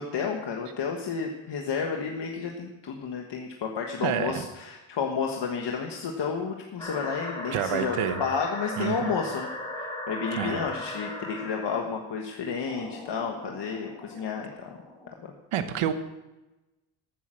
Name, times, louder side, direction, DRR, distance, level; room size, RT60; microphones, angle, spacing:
voice 1, 0.0-9.5 9.8-14.7 15.2-15.3, left 6 dB, 55° left, 2 dB, 1.4 m, -31 dB
voice 2, 4.0-4.4 7.5-8.2 8.8-9.1 10.4-10.6 15.5-15.9, right 9 dB, 85° right, 9 dB, 1.1 m, -28 dB
sound 1, 6.8-11.8 12.7-15.1, left 1 dB, 10° left, 3.2 m, -38 dB
13.5 x 9.1 x 6.4 m, 1.1 s
cardioid pair, 145°, 50 cm